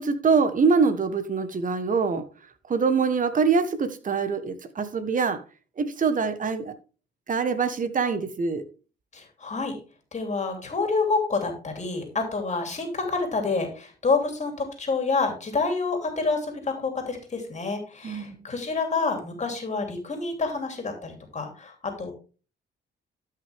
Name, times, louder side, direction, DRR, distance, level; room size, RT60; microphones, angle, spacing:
voice 1, 0.0-2.2 2.7-5.4 5.8-6.7 7.3-8.6 18.0-18.4, right 5 dB, 40° right, 1.4 m, -24 dB
voice 2, 9.1-9.8 10.1-22.1, left 4 dB, 35° left, 3.1 m, -28 dB
12.5 x 6.0 x 3.5 m
cardioid pair, 90°, 20 cm